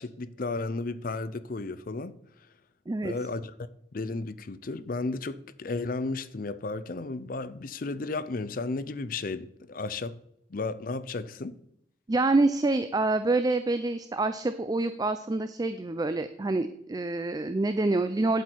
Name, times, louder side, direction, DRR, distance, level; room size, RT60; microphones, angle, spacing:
voice 1, 0.0-2.1 3.0-3.5 3.9-10.2 10.5-11.6, left 3 dB, 50° left, 0.6 m, -33 dB
voice 2, 12.1-18.4, right 2 dB, 20° right, 0.4 m, -26 dB
9.5 x 8.1 x 4.6 m
head